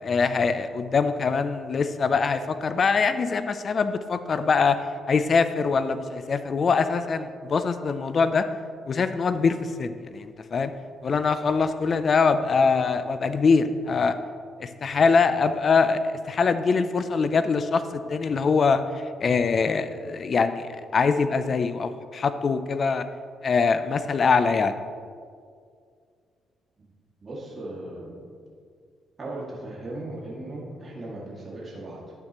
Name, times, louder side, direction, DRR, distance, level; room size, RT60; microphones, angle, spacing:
voice 1, 0.0-4.8 5.1-8.5 8.9-10.7 11.0-14.2 14.6-23.0 23.4-24.7, left 5 dB, 45° left, 11 dB, 0.6 m, -23 dB
voice 2, 27.2-28.3 29.2-32.1, right 1 dB, 35° right, -4 dB, 2.3 m, -37 dB
11.5 x 9.0 x 3.1 m, 2.2 s
cardioid pair, 90°, 0 cm